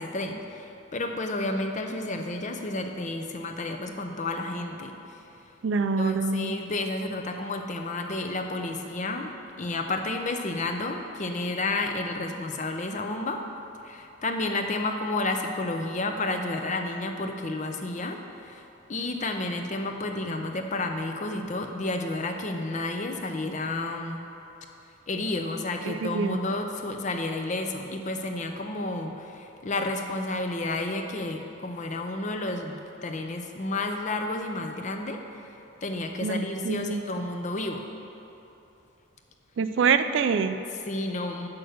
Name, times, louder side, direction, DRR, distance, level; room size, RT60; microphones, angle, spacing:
voice 1, 0.0-4.9 6.0-13.4 13.8-24.2 25.1-35.5 35.8-37.9 40.7-41.5, left 2 dB, 35° left, 4 dB, 0.6 m, -31 dB
voice 2, 5.6-6.5 25.8-26.4 36.2-37.0 39.6-40.6, right 5 dB, 60° right, 10 dB, 0.3 m, -25 dB
7.9 x 6.0 x 6.3 m, 2.9 s
head